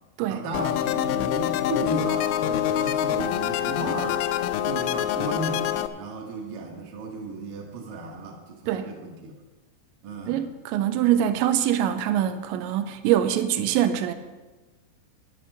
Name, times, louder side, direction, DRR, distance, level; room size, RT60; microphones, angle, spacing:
voice 1, 0.3-4.3 4.6-9.4 10.0-10.4, right 2 dB, 60° right, 2.5 m, -34 dB
sound 1, 0.5-5.9, left 11 dB, 80° left, 2.7 m, -26 dB
voice 2, 10.3-14.1, right 11 dB, 85° right, 2.9 m, -24 dB
10.5 x 8.4 x 6.6 m
omnidirectional pair, 5.4 m